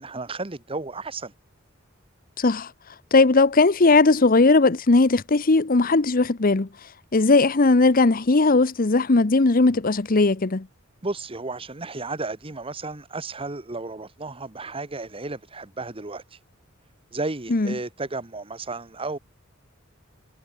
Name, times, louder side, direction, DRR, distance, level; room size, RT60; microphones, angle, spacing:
voice 1, 0.0-1.3 11.0-16.4 17.1-19.2, right 3 dB, 30° right, 1.3 m, -33 dB
voice 2, 2.4-2.7 3.1-6.7 7.1-10.6 17.5-17.7, left 3 dB, 45° left, 0.9 m, -18 dB
head